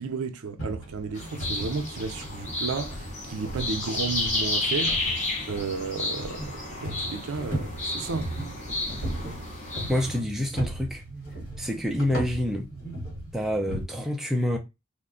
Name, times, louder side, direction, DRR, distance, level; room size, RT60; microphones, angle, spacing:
voice 1, 0.0-5.0 5.5-8.3, right 4 dB, 75° right, 0.5 m, -33 dB
sound 1, 0.6-13.8, right 1 dB, 75° left, 1.4 m, -37 dB
sound 2, 1.1-10.2, left 2 dB, 30° left, 0.7 m, -32 dB
voice 2, 9.9-11.0 11.6-12.7 13.3-14.6, left 1 dB, ahead, 0.3 m, -27 dB
2.5 x 2.1 x 3.6 m
head